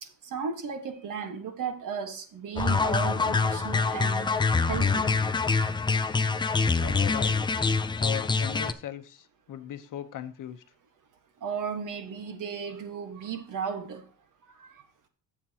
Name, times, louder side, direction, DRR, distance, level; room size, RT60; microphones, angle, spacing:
voice 1, 0.0-4.3 4.7-5.1 11.4-14.1 14.5-14.8, right 6 dB, 60° right, 7 dB, 1.5 m, -35 dB
sound 1, 2.6-8.7, left 4 dB, 15° left, 0.4 m, -25 dB
voice 2, 6.8-7.4 8.0-10.6, left 11 dB, 60° left, 10 dB, 0.9 m, -38 dB
13.5 x 7.4 x 2.9 m, 0.40 s
cardioid pair, 155°, 36 cm